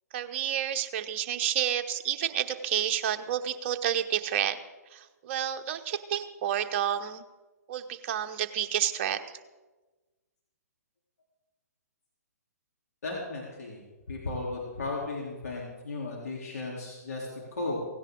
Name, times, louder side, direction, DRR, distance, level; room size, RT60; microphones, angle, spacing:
voice 1, 0.1-4.6 4.9-7.2 7.7-9.2, right 10 dB, 40° right, 8 dB, 1.0 m, -30 dB
voice 2, 13.0-17.8, left 3 dB, 70° left, -3 dB, 3.4 m, -35 dB
17.0 x 16.5 x 3.8 m, 1.2 s
figure-of-eight pair, 125°, 9 cm